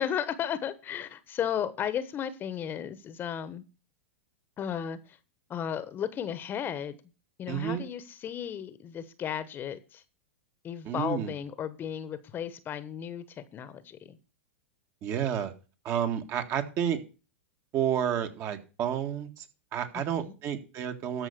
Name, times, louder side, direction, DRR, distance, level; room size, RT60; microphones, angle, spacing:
voice 1, 0.0-3.6 4.6-5.2 5.5-7.0 7.4-10.0 10.6-14.2 19.9-20.3, left 9 dB, 30° left, 1.1 m, -34 dB
voice 2, 7.5-7.8 10.8-11.3 15.0-15.5 15.8-17.0 17.7-19.5 19.7-21.3, right 9 dB, 40° right, 1.8 m, -30 dB
13.0 x 5.4 x 6.8 m
hypercardioid pair, 110°, 7 cm